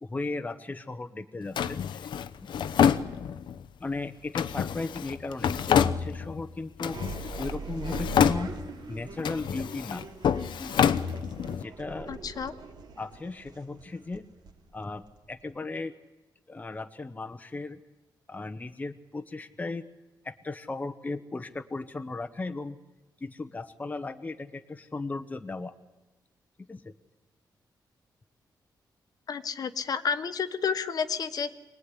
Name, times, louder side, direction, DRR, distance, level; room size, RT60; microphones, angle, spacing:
voice 1, 0.0-2.1 2.4-2.5 3.8-7.0 7.4-8.5 8.9-10.1 10.6-10.8 11.6-12.1 13.0-14.3 14.7-15.9 16.5-17.8 18.3-19.8 20.2-22.8 23.2-25.7 26.7-26.9, left 3 dB, 20° left, 8 dB, 0.9 m, -36 dB
Drawer open or close, 1.6-3.6 4.3-6.4 6.8-7.6 7.8-8.8 9.2-11.6, left 8 dB, 85° left, 0.9 m, -27 dB
sound 1, 6.9-15.5, right 4 dB, 70° right, 2.8 m, -42 dB
voice 2, 12.1-12.5 29.3-31.5, left 6 dB, 55° left, 10 dB, 1.2 m, -30 dB
24.0 x 19.5 x 9.9 m, 1.1 s
wide cardioid pair, 140°, 8 cm